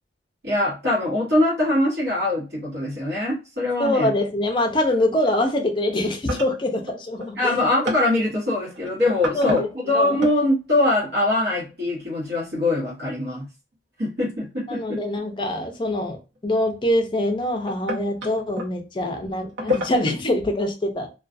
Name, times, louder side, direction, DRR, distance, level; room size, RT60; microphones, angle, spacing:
voice 1, 0.4-4.1 7.4-13.5 14.0-15.0, left 2 dB, 60° right, 1.1 m, -23 dB
sound 1, 2.1-2.2 4.2-4.7 5.0-5.3 5.8-10.4 11.5-12.0 14.0-14.1 16.4-16.5 17.3-18.7 19.4-20.2, left 2 dB, 75° right, 0.9 m, -32 dB
voice 2, 3.8-7.5 9.3-9.7 9.9-10.2 14.7-21.1, left 1 dB, 25° left, 0.4 m, -24 dB
2.4 x 2.3 x 2.4 m
head